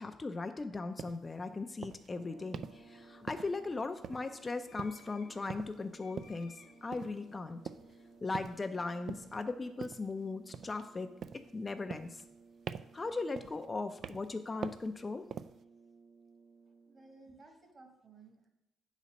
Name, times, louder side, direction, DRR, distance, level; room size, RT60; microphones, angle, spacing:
voice 1, 0.0-7.6 8.2-11.1 11.3-12.2 12.9-15.3, left 3 dB, 25° left, 7 dB, 0.4 m, -38 dB
sound 1, 1.0-1.2 1.8-2.1 2.5-2.8 3.3-3.7 4.0-4.5 4.8-5.1 5.5-5.8 6.2-6.4 6.9-7.2 7.7-8.0 8.3-8.7 9.1-9.4 9.8-10.1 10.5-10.9 11.2-11.5 11.9-12.4 12.7-13.0 13.4-13.7 14.0-14.3 14.6-14.9 15.3-15.6, right 7 dB, 60° right, 0.3 m, -44 dB
sound 2, 2.0-10.5, left 4 dB, 70° left, 0.9 m, -63 dB
sound 3, 2.1-17.2, right 4 dB, 85° right, 1.0 m, -60 dB
voice 2, 16.8-18.5, right 3 dB, 40° right, 3 dB, 1.7 m, -57 dB
8.2 x 4.1 x 5.2 m, 0.91 s
cardioid pair, 90°, 0 cm